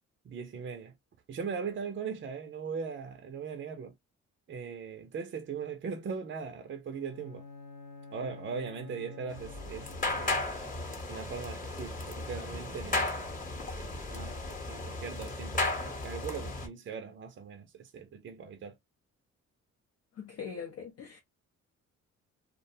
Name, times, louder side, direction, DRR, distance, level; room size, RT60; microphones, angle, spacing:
voice 1, 0.2-0.9 1.3-3.9 4.5-7.4 8.1-9.9 10.2-10.6 11.1-13.1 13.8-18.7, right 6 dB, 40° right, 0.5 m, -39 dB
Bowed string instrument, 6.9-10.7, left 3 dB, 85° left, 0.7 m, -49 dB
sound 1, 9.3-16.7, left 2 dB, 25° left, 0.9 m, -35 dB
voice 2, 20.2-21.2, left 6 dB, 50° left, 0.6 m, -41 dB
2.4 x 2.1 x 2.7 m
cardioid pair, 90°, 30 cm